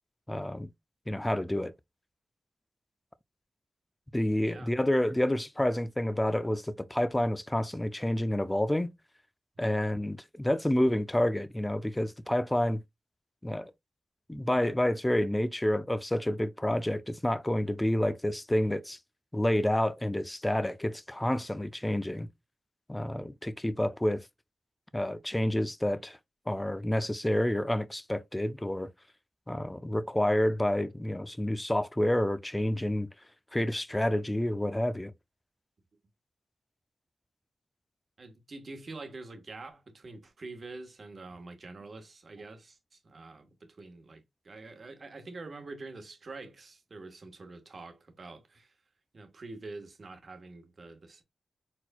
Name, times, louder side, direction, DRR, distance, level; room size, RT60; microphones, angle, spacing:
voice 1, 0.3-0.7 1.1-1.7 4.1-8.9 9.6-12.8 13.4-13.7 14.3-19.0 19.3-22.3 22.9-24.3 24.9-26.2 26.5-28.9 29.5-33.1 33.5-35.1, left 1 dB, 10° left, 0.5 m, -29 dB
voice 2, 38.2-48.7 49.1-51.2, right 3 dB, 50° right, 1.3 m, -46 dB
4.4 x 4.1 x 2.2 m
wide cardioid pair, 90°, 0 cm